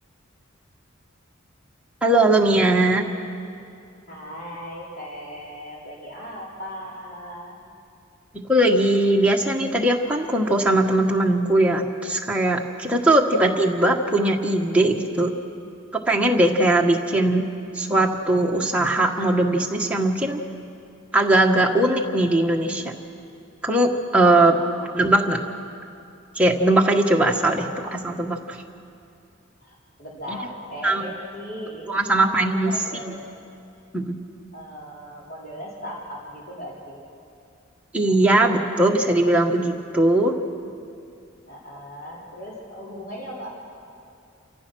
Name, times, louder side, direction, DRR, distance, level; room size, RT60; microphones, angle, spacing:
voice 1, 2.0-3.1 8.3-15.3 16.1-17.4 17.7-20.4 21.1-22.9 23.6-24.6 24.9-25.4 26.3-28.6 30.3-30.4 30.8-31.1 31.9-32.7 33.9-34.2 37.9-40.3, right 1 dB, 5° right, -1 dB, 1.4 m, -20 dB
voice 2, 4.1-7.6 24.5-24.7 27.6-27.8 29.6-33.3 34.5-37.0 41.5-43.6, equal, 45° left, -5 dB, 4.0 m, -37 dB
28.5 x 14.5 x 6.3 m, 2.6 s
head